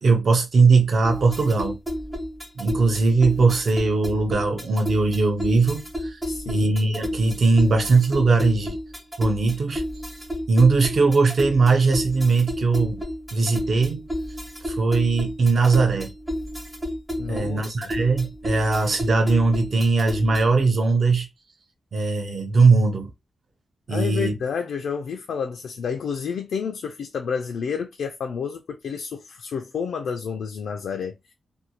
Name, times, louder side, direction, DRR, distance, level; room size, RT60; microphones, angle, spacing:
voice 1, 0.0-1.8 2.6-6.2 6.5-8.8 9.2-9.8 10.5-13.0 13.3-14.0 14.7-16.1 17.3-21.3 21.9-23.1 23.9-24.3, right 3 dB, 45° right, 0.6 m, -20 dB
sound 1, 1.0-20.6, equal, 5° right, 0.5 m, -32 dB
voice 2, 6.3-6.8 17.2-17.9 23.9-31.3, left 6 dB, 80° left, 0.3 m, -30 dB
2.6 x 2.2 x 2.8 m
wide cardioid pair, 165°, 0 cm